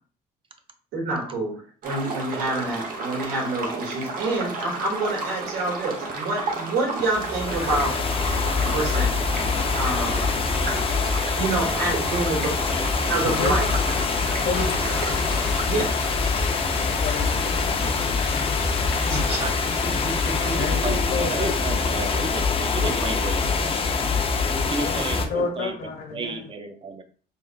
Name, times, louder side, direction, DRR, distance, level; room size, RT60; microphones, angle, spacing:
voice 1, 0.9-8.0 8.6-9.2 9.7-10.3 11.4-12.6 13.1-13.7 15.7-16.0 19.0-19.4 20.0-20.6, right 2 dB, 80° right, -2 dB, 2.2 m, -27 dB
sound 1, 1.8-15.6, right 3 dB, 55° right, 1.0 m, -32 dB
sound 2, 7.0-25.3, left 4 dB, 35° left, 0.6 m, -24 dB
voice 2, 13.2-13.5 14.3-15.0 16.8-18.2 20.6-22.3 24.4-26.5, left 4 dB, 65° left, 2 dB, 1.4 m, -31 dB
sound 3, 14.5-20.5, left 5 dB, 80° left, 1.1 m, -35 dB
voice 3, 20.4-23.8 24.7-25.8 26.1-27.0, right 4 dB, 30° right, 7 dB, 0.7 m, -32 dB
4.9 x 3.5 x 2.4 m, 0.42 s
cardioid pair, 110°, 17 cm